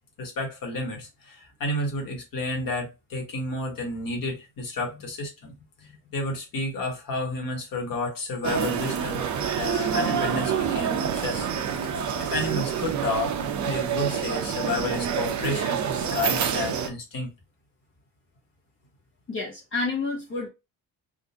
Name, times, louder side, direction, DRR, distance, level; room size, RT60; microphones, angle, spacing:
voice 1, 0.2-5.5 6.1-9.2 9.5-11.5 11.8-13.4 13.6-17.3, left 2 dB, 60° left, 1.6 m, -31 dB
sound 1, 8.4-16.9, right 7 dB, 50° right, 0.7 m, -27 dB
voice 2, 19.3-20.5, left 3 dB, 35° left, 0.9 m, -29 dB
3.8 x 2.5 x 2.7 m
cardioid pair, 155°, 38 cm